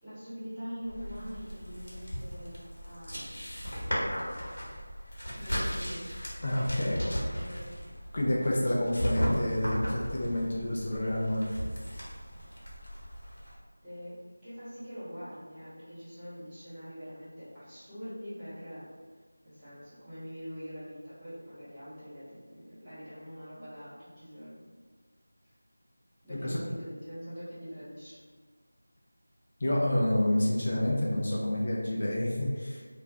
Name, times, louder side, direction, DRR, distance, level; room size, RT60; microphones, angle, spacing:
voice 1, 0.0-3.5 5.3-6.0 6.7-7.7 13.8-14.1 14.4-18.8 19.4-24.6 26.2-28.2, equal, 5° right, -20 dB, 1.0 m, -44 dB
sound 1, 0.8-13.5, equal, 70° left, 1.0 m, -36 dB
voice 2, 6.4-7.0 8.1-11.5 26.3-26.6 29.6-32.8, left 1 dB, 35° left, -4 dB, 0.4 m, -28 dB
2.4 x 2.4 x 3.2 m, 1.5 s
figure-of-eight pair, 175°, 0 cm